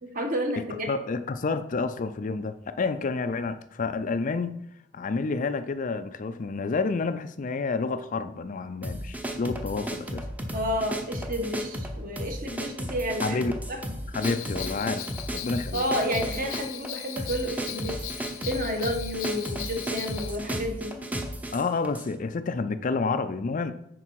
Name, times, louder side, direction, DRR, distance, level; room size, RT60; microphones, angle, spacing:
voice 1, 0.0-0.9 10.5-13.4 13.7-13.8 15.7-21.0, equal, 45° right, 3 dB, 1.3 m, -31 dB
voice 2, 0.9-4.6 4.9-10.2 13.2-13.6 14.1-15.1 15.3-15.8 21.5-23.7, left 4 dB, 40° left, 10 dB, 0.4 m, -29 dB
sound 1, 8.8-22.1, right 1 dB, 10° right, 0.7 m, -34 dB
Bell, 14.2-20.4, left 12 dB, 75° left, 0.6 m, -39 dB
9.8 x 4.5 x 4.7 m, 0.77 s
head